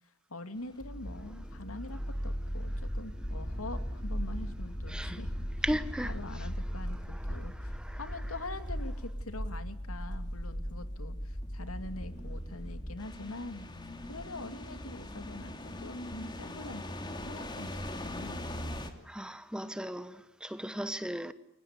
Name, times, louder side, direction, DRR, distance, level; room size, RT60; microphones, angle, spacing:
voice 1, 0.3-5.3 6.0-13.7 14.1-18.7, left 2 dB, 85° left, 2.7 m, -44 dB
sound 1, 0.7-18.9, equal, 20° left, 2.7 m, -38 dB
voice 2, 4.9-5.2 5.6-6.5 6.9-8.2 19.0-21.3, equal, 5° right, 1.2 m, -37 dB
29.5 x 23.5 x 8.5 m
head